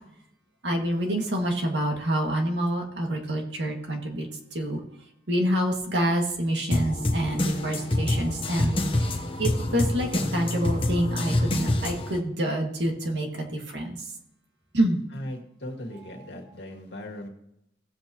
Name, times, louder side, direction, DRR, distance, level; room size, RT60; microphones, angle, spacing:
voice 1, 0.6-4.3 4.5-4.8 5.3-9.1 9.4-14.0 14.7-15.0, right 1 dB, 80° right, 1 dB, 2.1 m, -27 dB
sound 1, 6.7-12.2, left 1 dB, 30° left, 1.0 m, -26 dB
voice 2, 15.1-17.3, left 1 dB, 70° left, 1 dB, 2.0 m, -38 dB
16.5 x 7.8 x 3.0 m, 0.79 s
head